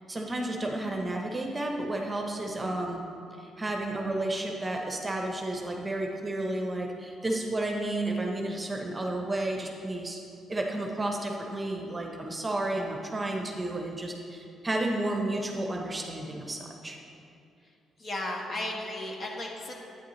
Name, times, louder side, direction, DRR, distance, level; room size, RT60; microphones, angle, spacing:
voice 1, 0.1-3.1 3.4-10.2 10.5-17.0, right 1 dB, 20° right, 1 dB, 0.9 m, -32 dB
voice 2, 18.0-19.7, left 1 dB, 45° left, -1 dB, 1.5 m, -34 dB
9.1 x 8.8 x 3.2 m, 2.6 s
cardioid pair, 90°, 0 cm